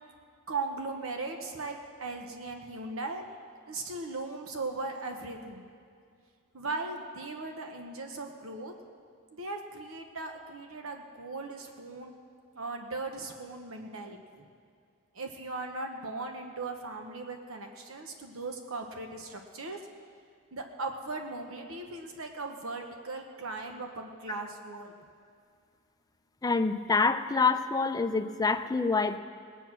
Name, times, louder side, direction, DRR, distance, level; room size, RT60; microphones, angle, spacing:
voice 1, 0.5-3.2 3.6-5.6 6.5-8.7 9.3-12.1 12.5-14.4 15.1-19.8 20.5-24.9, right 3 dB, 70° right, 4 dB, 1.2 m, -38 dB
voice 2, 26.4-29.2, left 4 dB, 15° left, 8 dB, 0.5 m, -26 dB
19.0 x 9.1 x 6.1 m, 2.2 s
head